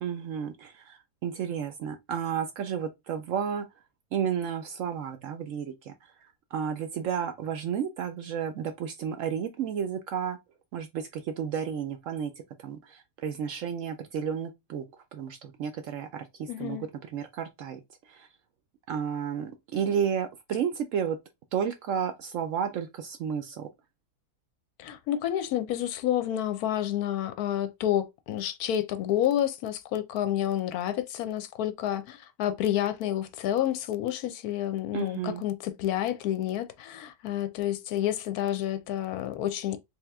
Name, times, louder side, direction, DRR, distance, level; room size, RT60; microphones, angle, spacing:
voice 1, 0.0-3.7 4.1-5.9 6.5-10.4 10.7-12.3 12.6-14.8 15.1-16.8 17.1-17.8 18.1-18.3 18.9-21.2 21.5-23.7 34.9-35.4, right 8 dB, 65° right, 0.8 m, -32 dB
voice 2, 16.5-16.8 24.8-39.8, left 11 dB, 75° left, 1.0 m, -29 dB
3.5 x 2.8 x 3.4 m
omnidirectional pair, 1.7 m